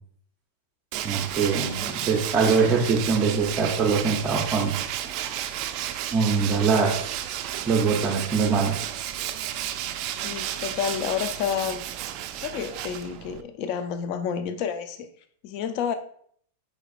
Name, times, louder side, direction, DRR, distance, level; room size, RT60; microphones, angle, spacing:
Tools, 0.9-13.4, right 11 dB, 45° right, 0.3 m, -32 dB
voice 1, 1.0-4.8 5.2-5.4 6.1-7.1 7.7-8.8, right 5 dB, 20° right, -2 dB, 0.7 m, -23 dB
voice 2, 10.2-11.9 12.4-15.1 15.4-15.9, left 8 dB, 45° left, 8 dB, 0.4 m, -30 dB
4.8 x 4.2 x 2.5 m, 0.62 s
supercardioid pair, 140°, 0 cm